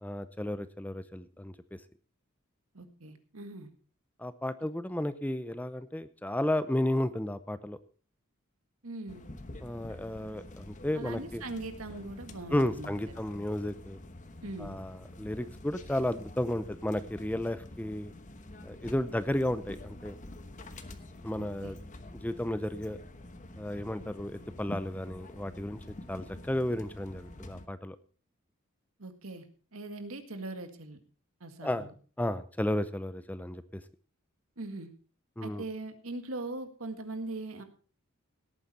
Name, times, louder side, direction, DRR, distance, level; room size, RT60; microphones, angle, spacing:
voice 1, 0.0-1.8 4.2-7.8 9.6-11.4 12.5-14.0 14.6-18.1 18.6-20.2 21.2-21.9 22.2-23.0 23.6-25.8 26.1-28.0 31.6-31.9 32.2-33.8 35.4-35.6, left 1 dB, 10° left, 13 dB, 0.6 m, -33 dB
voice 2, 2.7-3.7 8.8-9.2 10.9-13.0 14.4-14.8 21.4-21.7 29.0-29.5 29.7-31.0 31.4-31.9 34.6-34.9 35.4-37.6, right 2 dB, 85° right, 8 dB, 1.8 m, -40 dB
sound 1, 9.1-27.7, left 1 dB, 35° left, 1.1 m, -47 dB
17.5 x 8.9 x 4.2 m, 0.40 s
head